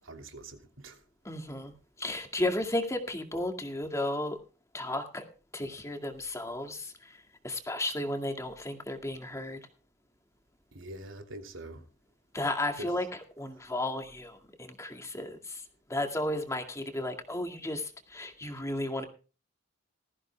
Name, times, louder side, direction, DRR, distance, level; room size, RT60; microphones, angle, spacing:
voice 1, 0.0-1.0 10.7-11.8 12.8-12.9, right 1 dB, 80° right, 2.9 m, -44 dB
voice 2, 1.2-1.7 2.0-4.4 4.7-5.2 5.5-9.6 12.3-15.6 15.9-19.0, left 1 dB, 15° left, 2.1 m, -34 dB
19.5 x 15.0 x 2.3 m
head